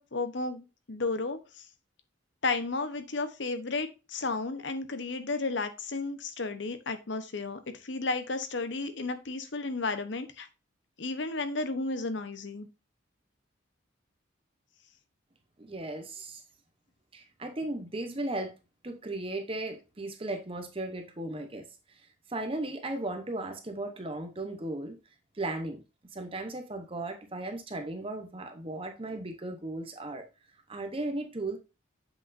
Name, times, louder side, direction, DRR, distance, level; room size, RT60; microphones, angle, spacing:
voice 1, 0.0-1.6 2.4-10.5 11.0-12.7, left 3 dB, 70° left, 0.9 m, -33 dB
voice 2, 15.6-16.4 17.1-18.5 18.8-25.0 25.3-25.8 26.1-30.2 30.7-31.6, right 2 dB, 30° right, 0.9 m, -36 dB
7.7 x 6.1 x 2.6 m
head